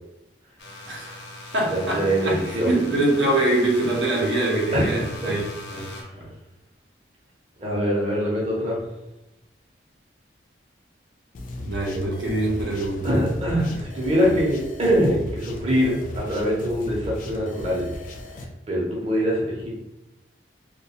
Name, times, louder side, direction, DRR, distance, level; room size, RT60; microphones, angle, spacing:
sound 1, 0.6-6.0, left 2 dB, 85° left, 0.6 m, -40 dB
voice 1, 0.9-1.2 1.5-5.4 5.7-5.9 11.6-13.1, right 2 dB, 85° right, -2 dB, 0.7 m, -24 dB
voice 2, 1.7-2.7 4.7-5.3 5.9-6.0 7.6-8.8 13.0-17.9 18.7-19.7, equal, 35° right, -4 dB, 0.6 m, -23 dB
sound 2, 11.3-18.4, left 1 dB, 45° left, 0.3 m, -36 dB
2.3 x 2.2 x 2.8 m, 0.93 s
head